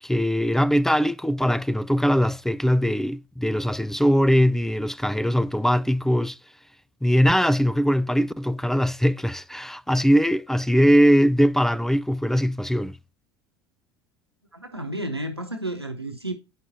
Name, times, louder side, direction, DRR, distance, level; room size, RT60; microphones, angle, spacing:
voice 1, 0.0-6.4 7.0-13.0, equal, 5° left, 0.3 m, -21 dB
voice 2, 14.5-16.3, right 1 dB, 90° right, 0.9 m, -31 dB
9.3 x 6.0 x 2.6 m
figure-of-eight pair, 70°, 13 cm